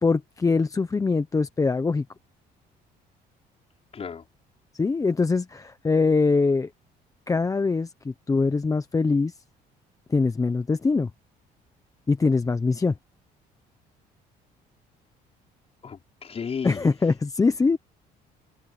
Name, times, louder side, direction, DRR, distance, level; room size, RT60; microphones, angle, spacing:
voice 1, 0.0-2.0 4.7-6.7 7.3-9.3 10.1-11.1 12.1-12.9 16.6-17.8, left 4 dB, 20° left, 0.9 m, -23 dB
voice 2, 3.9-4.2 15.8-16.9, left 6 dB, 35° left, 5.2 m, -34 dB
cardioid pair, 110°, 17 cm